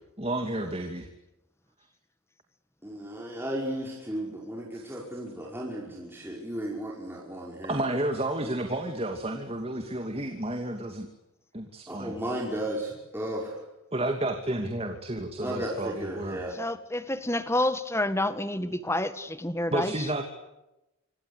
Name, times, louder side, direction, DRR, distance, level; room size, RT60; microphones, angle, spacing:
voice 1, 0.2-1.1 4.7-4.8 7.7-11.1 11.5-12.1 13.9-16.4 19.7-20.2, right 1 dB, 25° right, 5 dB, 2.6 m, -31 dB
voice 2, 2.8-7.8 11.9-13.6 15.4-16.5, right 1 dB, 10° right, -2 dB, 5.5 m, -34 dB
voice 3, 16.6-19.9, left 1 dB, 10° left, 12 dB, 1.6 m, -28 dB
27.0 x 26.0 x 8.3 m, 0.94 s
head